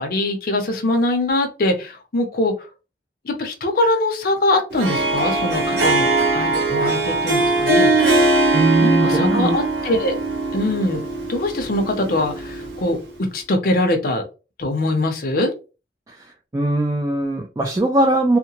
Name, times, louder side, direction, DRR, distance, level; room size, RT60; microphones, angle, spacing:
voice 1, 0.0-2.5 3.2-7.9 8.8-10.2 10.5-14.2 14.6-15.5, left 1 dB, 55° left, 4 dB, 0.6 m, -22 dB
Harp, 4.7-13.0, right 2 dB, 70° right, 1.0 m, -20 dB
voice 2, 8.5-9.6 16.1-16.3 16.5-18.4, right 1 dB, 20° right, 0 dB, 0.3 m, -20 dB
2.8 x 2.1 x 2.9 m, 0.31 s
head